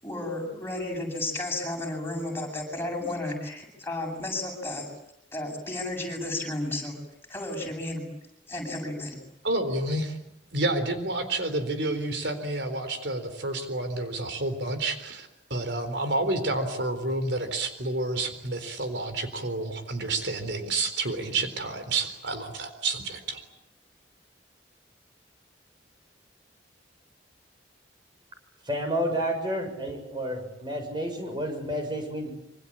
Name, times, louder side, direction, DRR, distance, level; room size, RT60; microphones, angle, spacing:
voice 1, 0.0-4.8 5.3-7.0 7.3-8.1 8.5-9.2, left 2 dB, 15° left, 1 dB, 7.7 m, -33 dB
voice 2, 9.4-10.2 10.5-23.4, right 2 dB, 70° right, 8 dB, 4.0 m, -29 dB
voice 3, 28.7-32.3, equal, 25° right, 5 dB, 7.3 m, -30 dB
26.0 x 26.0 x 8.8 m, 0.78 s
head